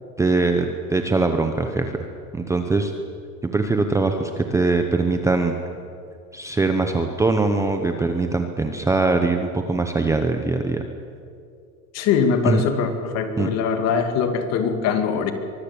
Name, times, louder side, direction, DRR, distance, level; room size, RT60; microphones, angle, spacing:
voice 1, 0.2-2.0 2.4-2.9 3.4-5.5 6.3-10.8 12.5-12.6 13.4-13.5, right 3 dB, 5° right, 5 dB, 0.8 m, -22 dB
voice 2, 11.9-15.3, left 6 dB, 40° left, 7 dB, 2.4 m, -22 dB
24.0 x 20.0 x 8.6 m, 2.4 s
supercardioid pair, 160°, 42 cm